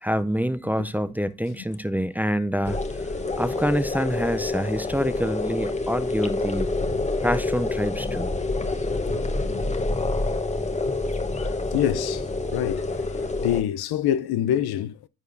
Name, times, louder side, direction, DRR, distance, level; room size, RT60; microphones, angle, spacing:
voice 1, 0.0-2.8 3.4-6.7 7.2-8.3, equal, 5° right, 0.4 m, -26 dB
sound 1, 2.6-13.6, left 2 dB, 20° left, 1.0 m, -27 dB
voice 2, 9.1-10.3 11.4-15.1, left 11 dB, 85° left, 0.6 m, -28 dB
14.5 x 4.8 x 2.6 m
cardioid pair, 90°, 37 cm